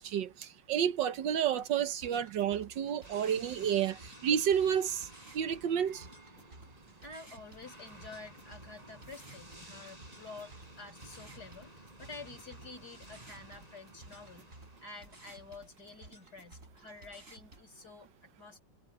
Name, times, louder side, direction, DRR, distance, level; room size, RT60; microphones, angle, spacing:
voice 1, 0.0-5.1 5.3-6.0, right 9 dB, 75° right, 1.6 m, -30 dB
sound 1, 1.6-17.6, right 2 dB, 40° right, 5.8 m, -56 dB
sound 2, 3.0-15.7, right 1 dB, 20° right, 6.1 m, -54 dB
voice 2, 7.0-18.6, left 3 dB, 55° left, 7.6 m, -50 dB
omnidirectional pair, 2.0 m